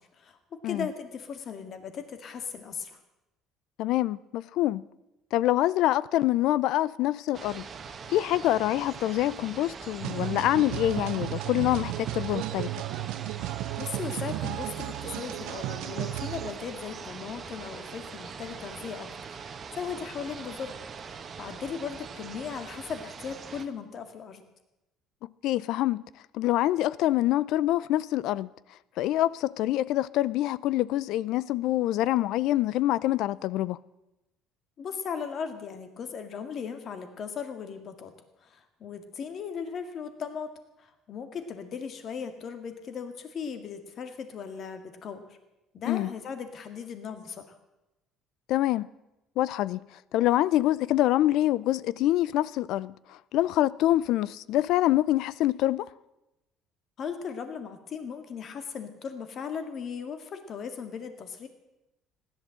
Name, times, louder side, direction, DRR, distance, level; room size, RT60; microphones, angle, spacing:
voice 1, 0.2-3.0 13.8-19.4 19.7-20.8 21.1-24.4 34.8-38.1 38.4-40.5 40.8-45.4 45.7-47.6 57.0-61.5, left 6 dB, 45° left, 2.0 m, -37 dB
voice 2, 3.8-4.9 5.3-7.7 8.1-12.7 25.2-26.0 26.3-28.5 29.0-33.8 45.9-46.1 48.5-48.9 49.4-49.9 50.1-55.9, left 14 dB, 70° left, 0.5 m, -25 dB
sound 1, 7.3-23.6, right 6 dB, 35° right, 1.3 m, -42 dB
sound 2, 10.0-16.5, right 16 dB, 80° right, 0.5 m, -34 dB
16.0 x 11.5 x 7.7 m
cardioid pair, 130°, 0 cm